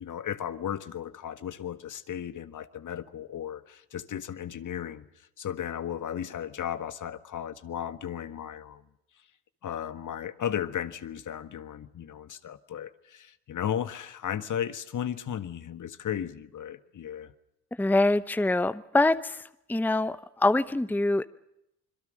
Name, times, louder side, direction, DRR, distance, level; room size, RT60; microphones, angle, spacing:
voice 1, 0.0-8.8 9.6-17.3, left 9 dB, 50° left, 12 dB, 1.6 m, -35 dB
voice 2, 17.8-19.4 19.7-21.2, left 2 dB, 5° left, 13 dB, 0.9 m, -24 dB
25.5 x 22.5 x 6.6 m, 0.82 s
supercardioid pair, 60°, 38 cm